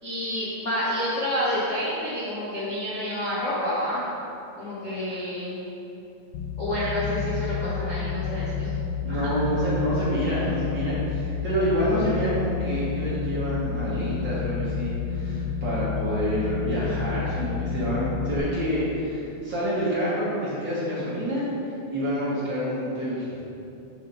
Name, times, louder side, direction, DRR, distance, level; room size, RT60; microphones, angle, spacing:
voice 1, 0.0-4.0 4.6-5.6 6.6-8.7 9.1-9.3, equal, 60° left, -10 dB, 0.8 m, -29 dB
sound 1, 6.3-18.4, left 6 dB, 80° left, 1.5 m, -30 dB
voice 2, 9.0-21.5 21.9-23.3, equal, 50° right, -9 dB, 1.5 m, -27 dB
6.5 x 4.7 x 5.3 m, 2.8 s
omnidirectional pair, 3.5 m